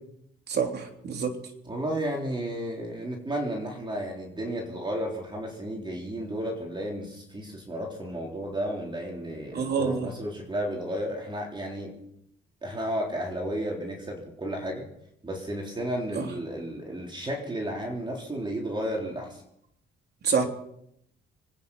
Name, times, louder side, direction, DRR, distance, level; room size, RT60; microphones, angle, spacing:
voice 1, 0.5-1.3 9.5-10.1 16.1-16.3 20.2-20.4, right 6 dB, 55° right, 3.4 m, -27 dB
voice 2, 1.7-11.9 12.6-14.9 15.2-19.4, right 1 dB, 25° right, 3.8 m, -33 dB
25.5 x 9.8 x 5.6 m
cardioid pair, 90°, 20 cm